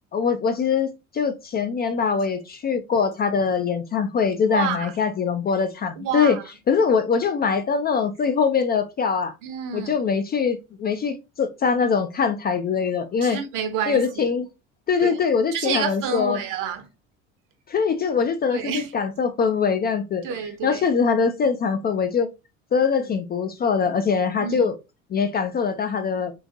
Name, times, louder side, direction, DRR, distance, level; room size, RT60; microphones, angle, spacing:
voice 1, 0.1-6.4 6.7-9.3 9.7-13.4 13.9-14.5 14.9-16.4 17.7-20.2 20.6-22.3 22.7-24.7 25.1-26.3, left 6 dB, 25° left, 0.4 m, -23 dB
voice 2, 4.5-4.9 6.0-6.4 9.4-9.9 13.2-14.3 15.0-15.2 15.5-16.8 18.5-18.9 20.2-20.8 23.0-23.2 24.4-24.6, right 7 dB, 55° right, 0.9 m, -29 dB
3.8 x 2.4 x 2.7 m
hypercardioid pair, 65°, 39 cm